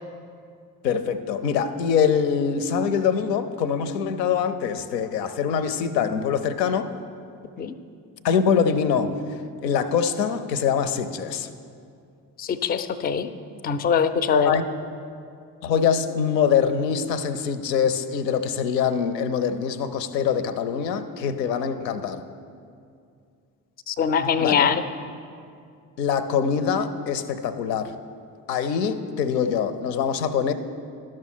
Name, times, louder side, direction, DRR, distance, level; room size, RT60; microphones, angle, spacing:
voice 1, 0.8-6.9 8.2-9.1 9.6-11.5 14.5-14.6 15.6-22.2 24.4-24.7 26.0-27.9 28.5-30.5, left 7 dB, 80° left, 11 dB, 0.6 m, -24 dB
voice 2, 12.4-13.3 13.6-14.5 23.9-24.8, left 7 dB, 20° left, 11 dB, 0.3 m, -22 dB
12.0 x 6.1 x 4.3 m, 2.4 s
figure-of-eight pair, 45°, 49 cm